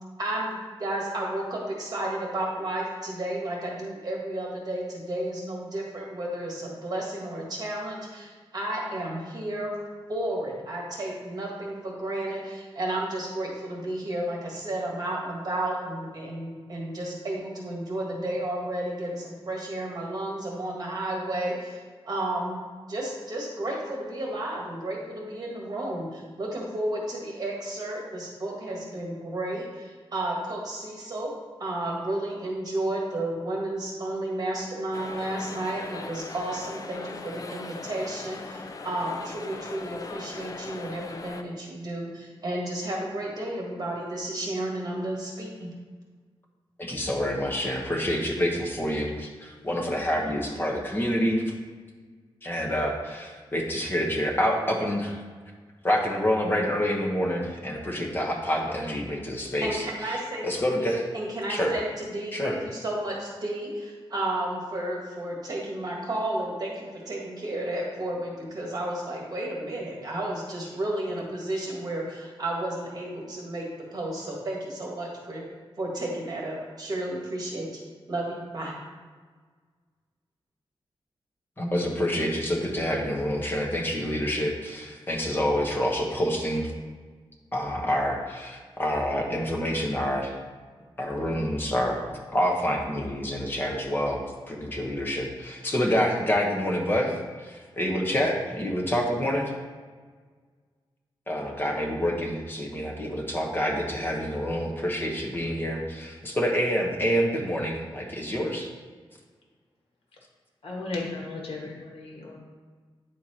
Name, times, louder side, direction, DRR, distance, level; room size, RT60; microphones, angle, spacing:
voice 1, 0.2-9.7 10.1-21.8 22.1-22.6 22.9-31.3 31.6-45.7 59.6-60.5 60.8-73.7 73.9-75.4 75.8-77.8 78.1-78.8, right 1 dB, 45° right, -2 dB, 1.7 m, -32 dB
sound 1, 34.9-41.4, left 3 dB, 40° left, 0.5 m, -39 dB
voice 2, 46.8-51.5 52.4-55.2 55.8-59.8 60.4-61.0 61.5-61.7 62.3-62.5 81.6-86.7 87.5-90.3 91.0-92.0 92.3-99.5 101.3-108.7, equal, 20° left, 0 dB, 1.2 m, -27 dB
voice 3, 110.6-112.4, left 3 dB, 80° left, -2 dB, 1.9 m, -35 dB
9.5 x 4.6 x 4.3 m, 1.5 s
wide cardioid pair, 175°, 10 cm